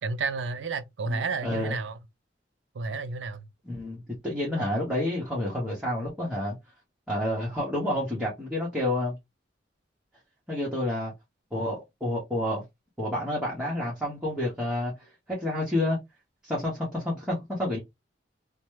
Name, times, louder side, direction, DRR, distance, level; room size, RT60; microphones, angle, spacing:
voice 1, 0.0-2.0 2.7-3.4, right 4 dB, 80° right, 0.4 m, -31 dB
voice 2, 1.1-1.8 3.6-6.6 7.1-9.2 10.5-11.1 11.5-12.6 13.0-14.9 15.3-16.0 16.4-17.8, left 1 dB, 5° right, 1.1 m, -29 dB
2.9 x 2.2 x 3.1 m
head